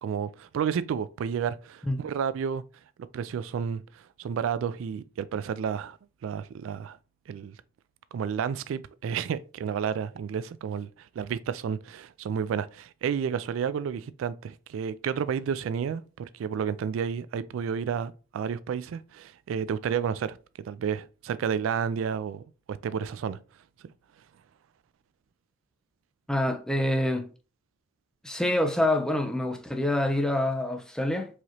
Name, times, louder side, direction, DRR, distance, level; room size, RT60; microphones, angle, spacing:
voice 1, 0.0-2.6 3.1-7.0 7.3-7.6 8.1-20.4 20.6-23.4, right 7 dB, 75° right, 0.3 m, -31 dB
voice 2, 26.3-27.3 28.2-31.3, left 1 dB, 5° left, 0.5 m, -26 dB
4.7 x 2.9 x 2.8 m
head